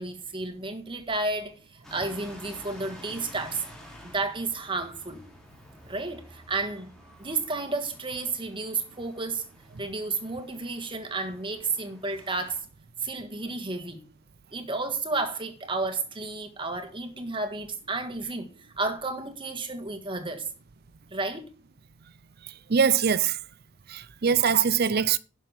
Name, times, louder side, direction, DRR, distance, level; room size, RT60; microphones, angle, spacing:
voice 1, 0.0-3.6 4.0-5.2 5.9-6.9 7.2-9.4 9.8-12.6 13.0-14.1 14.5-20.5 21.1-21.5, right 3 dB, 25° right, 1.7 m, -32 dB
sound 1, 1.8-12.6, left 1 dB, 5° left, 4.2 m, -50 dB
voice 2, 22.7-23.4 23.9-25.2, right 7 dB, 55° right, 0.6 m, -22 dB
11.0 x 6.4 x 5.9 m
head